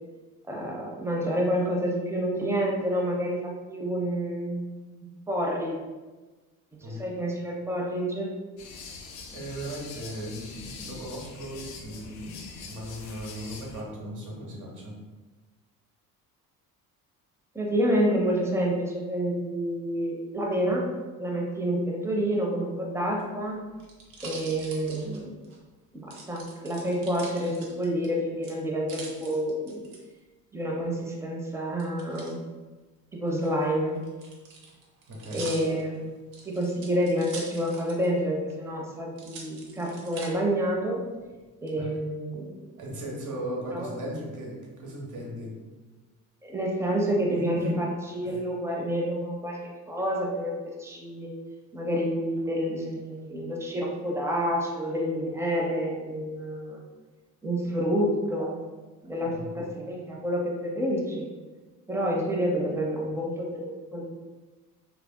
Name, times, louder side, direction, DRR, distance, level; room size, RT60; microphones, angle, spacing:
voice 1, 0.5-4.6 5.0-5.8 6.8-8.3 17.5-20.8 21.2-23.6 24.2-25.3 25.9-29.8 30.5-32.4 33.1-34.0 35.3-36.1 36.5-41.0 41.6-42.6 43.7-43.9 46.4-51.3 51.7-56.8 57.4-58.6 59.0-61.3 61.9-64.0, equal, 5° right, -2 dB, 0.5 m, -28 dB
sound 1, 8.6-13.8, left 4 dB, 70° left, 0.6 m, -43 dB
voice 2, 9.3-14.9 35.1-35.5 41.8-41.9 42.8-45.5 47.3-47.7 48.2-48.4 59.0-59.6, equal, 40° right, -3 dB, 1.0 m, -37 dB
sound 2, 23.1-25.6 26.1-28.1 28.4-30.0 31.8-32.3 33.3-38.2 38.5-38.6 39.2-40.3 40.9-41.4, right 3 dB, 65° right, 0.8 m, -44 dB
3.3 x 2.5 x 2.2 m, 1.3 s
figure-of-eight pair, 55°, 45 cm